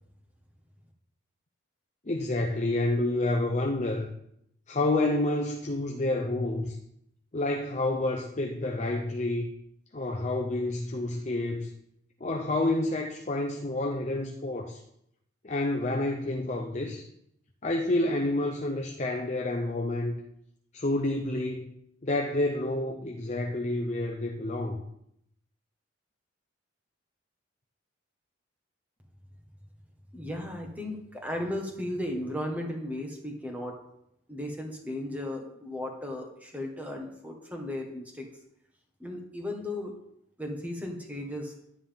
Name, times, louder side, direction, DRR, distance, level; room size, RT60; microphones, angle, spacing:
voice 1, 2.1-4.1 4.7-6.8 7.3-9.5 9.9-11.7 12.2-14.8 15.4-17.0 17.6-20.2 20.7-21.7 22.0-24.8, left 2 dB, 35° left, 2 dB, 0.7 m, -29 dB
voice 2, 30.1-33.8 34.3-38.3 39.0-40.0 40.4-41.5, left 1 dB, 10° right, 2 dB, 1.5 m, -35 dB
11.0 x 9.5 x 3.6 m, 0.76 s
head